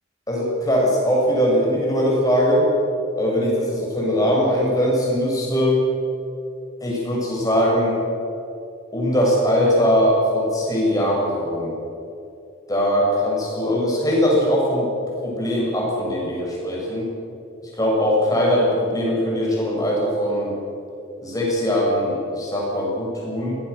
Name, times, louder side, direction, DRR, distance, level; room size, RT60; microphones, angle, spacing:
voice 1, 0.3-2.7 3.2-5.8 6.8-8.0 8.9-11.7 12.7-14.9 15.2-17.1 17.8-20.5 21.2-23.6, equal, 20° left, -4 dB, 7.3 m, -21 dB
24.5 x 18.5 x 7.0 m, 2.7 s
head